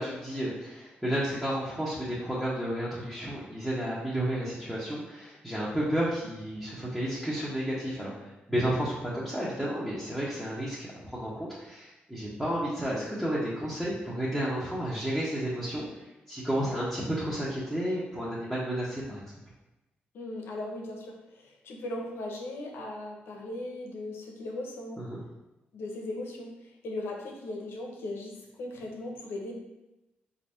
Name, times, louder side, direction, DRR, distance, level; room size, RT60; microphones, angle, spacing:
voice 1, 0.0-15.9 16.3-19.2 25.0-25.2, equal, 5° right, -9 dB, 1.0 m, -32 dB
voice 2, 20.1-25.1 25.7-29.5, left 1 dB, 75° left, 1 dB, 0.8 m, -38 dB
4.0 x 2.7 x 3.4 m, 0.98 s
cardioid pair, 70°, 4 cm